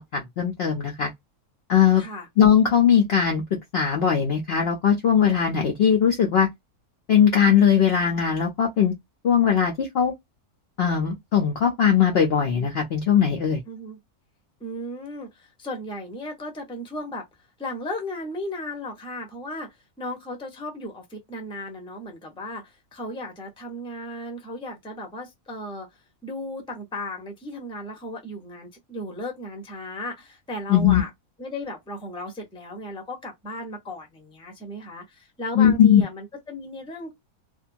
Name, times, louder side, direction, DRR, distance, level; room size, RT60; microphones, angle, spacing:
voice 1, 0.1-1.1 1.7-2.0 2.4-3.4 3.7-6.5 7.1-8.9 9.2-10.1 10.8-13.6 30.7-31.0 35.5-36.0, left 8 dB, 55° left, 0.7 m, -19 dB
voice 2, 2.0-2.3 13.7-14.0 14.6-17.2 17.6-19.7 20.0-25.9 26.2-31.1 31.4-37.1, left 1 dB, 5° left, 0.6 m, -35 dB
2.6 x 2.2 x 2.5 m
omnidirectional pair, 1.6 m